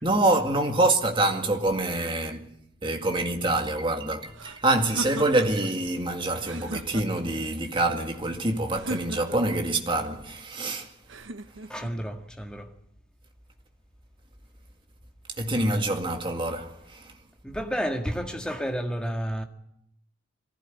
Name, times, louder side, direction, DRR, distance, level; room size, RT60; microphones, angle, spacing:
voice 1, 0.0-2.5 2.8-10.9 15.4-17.2, right 2 dB, 25° right, 2.1 m, -26 dB
sound 1, 4.3-5.7 6.4-7.4 8.7-9.6 11.1-11.9, right 2 dB, 65° right, 1.0 m, -38 dB
voice 2, 11.7-12.7 17.4-19.4, equal, 5° left, 1.8 m, -31 dB
23.0 x 15.5 x 8.3 m
head